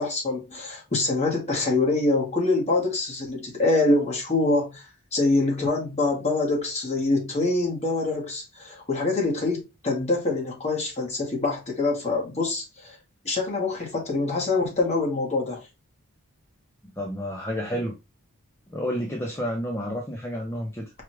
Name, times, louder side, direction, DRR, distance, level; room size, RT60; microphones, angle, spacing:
voice 1, 0.0-12.9 13.2-15.6, left 2 dB, 30° left, 1.3 m, -25 dB
voice 2, 17.0-18.0 18.7-20.9, equal, 10° left, 0.5 m, -30 dB
4.8 x 2.4 x 3.1 m
head